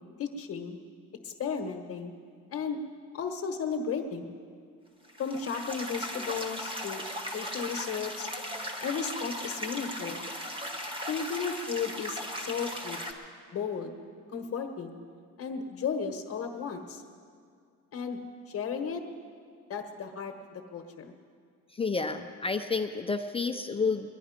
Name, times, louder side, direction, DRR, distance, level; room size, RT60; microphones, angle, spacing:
voice 1, 0.2-0.8 1.2-2.1 2.5-2.8 3.1-4.3 5.2-7.0 7.3-8.3 8.8-10.2 11.1-13.0 13.5-13.9 14.3-15.0 15.4-17.0 17.9-18.2 18.5-19.0 19.7-21.1, left 6 dB, 45° left, 4 dB, 1.1 m, -34 dB
sound 1, 5.0-13.1, equal, 15° right, 1.3 m, -37 dB
voice 2, 21.7-24.1, left 4 dB, 20° left, 5 dB, 0.4 m, -30 dB
21.5 x 11.0 x 5.1 m, 2.2 s
cardioid pair, 155°, 32 cm